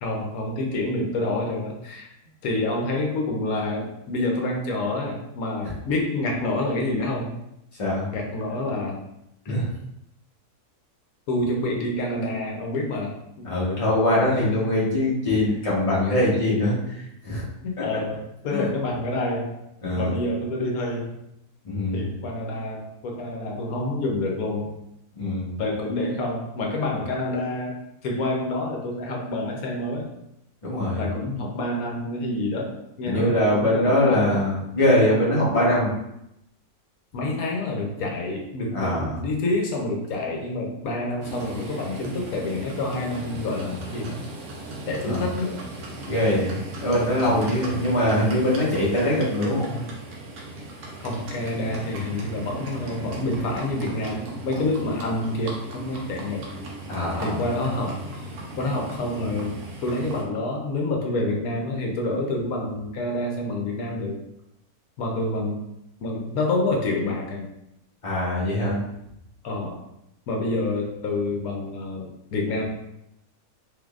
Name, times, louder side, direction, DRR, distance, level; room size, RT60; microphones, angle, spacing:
voice 1, 0.0-2.1 2.4-7.3 8.1-9.0 9.5-9.7 11.3-13.2 14.3-14.5 17.6-19.5 20.0-21.1 21.9-24.7 25.6-30.1 31.0-34.5 34.8-34.9 37.1-44.2 44.9-45.6 47.2-47.5 51.0-56.4 57.2-58.0 58.6-64.2 65.0-65.6 66.0-67.4 69.4-69.8 70.3-72.6, left 2 dB, 75° left, 0 dB, 1.1 m, -28 dB
voice 2, 13.4-17.4 17.8-17.9 18.5-18.7 19.8-20.1 21.6-22.1 25.1-25.6 30.6-31.0 33.0-35.9 38.7-39.2 45.0-45.2 46.1-49.8 56.9-57.4 68.0-68.8, left 1 dB, 25° left, -7 dB, 1.0 m, -22 dB
Livestock farm animals working animals, 41.2-60.2, right 1 dB, 85° right, 1.3 m, -37 dB
3.6 x 3.3 x 2.4 m, 0.84 s
omnidirectional pair, 1.6 m